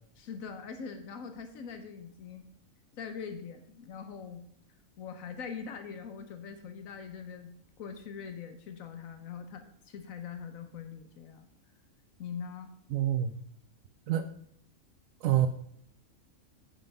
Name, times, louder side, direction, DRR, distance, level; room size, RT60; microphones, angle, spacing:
voice 1, 0.2-2.5 2.9-4.4 5.0-11.5 12.2-12.7, left 6 dB, 85° left, 7 dB, 1.3 m, -42 dB
voice 2, 12.9-13.3 14.1-14.3 15.2-15.5, right 11 dB, 80° right, 10 dB, 1.0 m, -26 dB
8.7 x 5.8 x 5.4 m, 0.66 s
omnidirectional pair, 1.4 m